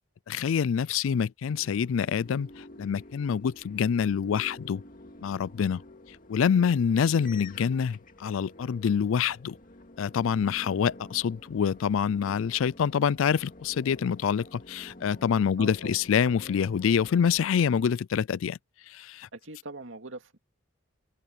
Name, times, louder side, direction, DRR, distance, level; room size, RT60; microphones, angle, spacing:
voice 1, 0.3-4.8 5.2-5.8 6.3-9.6 10.0-18.6 18.9-19.3, left 7 dB, 85° left, 0.4 m, -26 dB
sound 1, 1.4-17.9, left 1 dB, 40° left, 2.4 m, -49 dB
voice 2, 15.6-16.0 19.3-20.4, right 2 dB, 75° right, 2.4 m, -42 dB
head